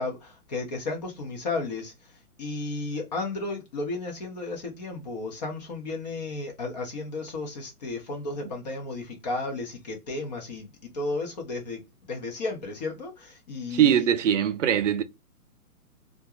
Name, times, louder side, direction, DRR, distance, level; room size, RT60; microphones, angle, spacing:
voice 1, 0.0-2.1 2.4-14.1, left 3 dB, 30° left, 0.7 m, -33 dB
voice 2, 13.7-15.0, right 10 dB, 55° right, 0.5 m, -22 dB
2.5 x 2.2 x 2.8 m
hypercardioid pair, 145°, 45 cm